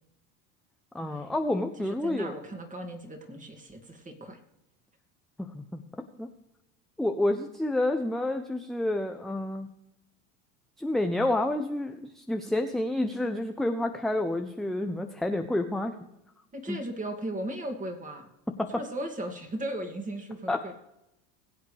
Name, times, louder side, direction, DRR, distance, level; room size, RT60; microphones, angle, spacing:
voice 1, 0.9-2.3 5.4-6.3 7.0-9.7 10.8-15.9 16.7-16.8 18.6-18.8 20.5-20.6, left 1 dB, ahead, 5 dB, 0.7 m, -29 dB
voice 2, 1.8-4.4 16.5-18.3 18.7-20.7, right 1 dB, 20° right, 4 dB, 2.5 m, -37 dB
21.0 x 8.2 x 3.4 m, 0.87 s
supercardioid pair, 95°, 38 cm